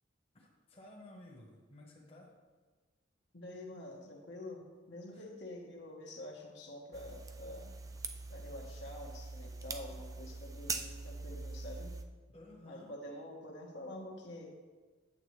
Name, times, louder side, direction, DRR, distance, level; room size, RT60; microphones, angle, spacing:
voice 1, 0.3-2.3 5.1-5.3 12.3-13.0, left 1 dB, 30° left, -2 dB, 1.2 m, -55 dB
voice 2, 3.3-7.7 8.3-11.9 12.6-14.5, left 1 dB, 60° left, -1 dB, 1.2 m, -47 dB
sound 1, 6.9-12.0, right 4 dB, 15° right, 0.3 m, -43 dB
8.7 x 8.1 x 3.2 m, 1.4 s
head